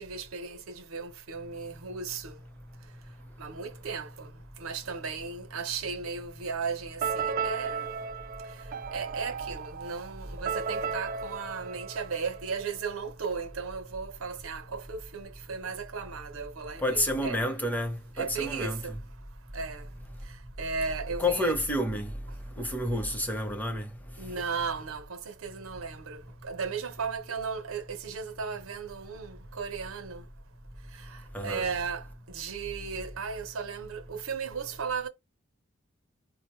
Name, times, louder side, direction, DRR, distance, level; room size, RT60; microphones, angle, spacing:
voice 1, 0.0-2.4 2.8-3.0 3.4-7.9 8.4-17.5 18.1-19.0 19.5-19.9 20.2-21.6 24.2-30.3 30.9-35.1, right 5 dB, 85° right, 0.7 m, -36 dB
sound 1, 7.0-12.8, right 6 dB, 45° right, 0.3 m, -35 dB
voice 2, 16.8-18.8 21.2-22.1 22.6-23.9 31.3-31.6, left 1 dB, 10° left, 0.7 m, -29 dB
4.9 x 2.1 x 3.0 m
head